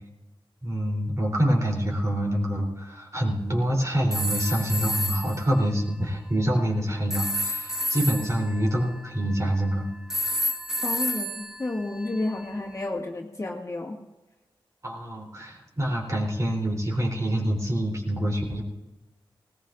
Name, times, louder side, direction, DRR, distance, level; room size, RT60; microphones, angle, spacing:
voice 1, 0.6-9.9 14.8-18.6, right 1 dB, 35° right, -1 dB, 3.5 m, -26 dB
sound 1, 4.1-5.4 7.1-9.6 10.1-12.4, equal, 5° right, 1.3 m, -30 dB
voice 2, 10.8-14.0, left 2 dB, 35° left, -1 dB, 1.9 m, -31 dB
19.5 x 18.5 x 2.6 m, 1.1 s
wide cardioid pair, 120°, 9 cm